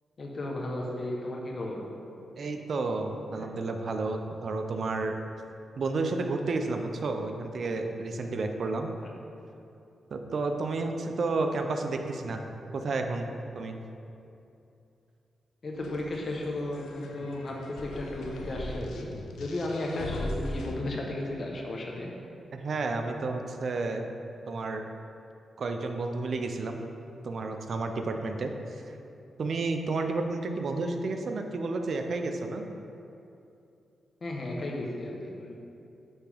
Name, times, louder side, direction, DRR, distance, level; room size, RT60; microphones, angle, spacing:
voice 1, 0.2-1.9 3.4-3.6 9.0-9.1 15.6-22.1 34.2-35.5, left 1 dB, 50° left, -1 dB, 1.0 m, -34 dB
voice 2, 2.4-5.2 5.8-8.9 10.1-12.4 12.7-13.8 22.5-24.1 24.5-24.9 25.6-26.8 27.2-28.8 29.4-32.6, right 3 dB, 60° right, 5 dB, 0.5 m, -31 dB
sound 1, 15.7-20.7, left 2 dB, 85° left, 0.5 m, -39 dB
9.5 x 3.5 x 3.5 m, 2.7 s
cardioid pair, 70°, 0 cm